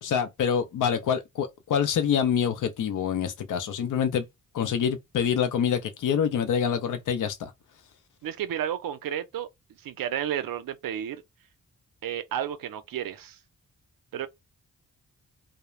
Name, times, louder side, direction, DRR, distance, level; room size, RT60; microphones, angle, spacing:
voice 1, 0.0-4.3 4.5-7.5, left 8 dB, 70° left, 0.5 m, -26 dB
voice 2, 8.2-9.5 9.8-11.2 12.0-13.4 14.1-14.3, right 10 dB, 85° right, 0.5 m, -32 dB
2.3 x 2.0 x 2.9 m
cardioid pair, 75°, 33 cm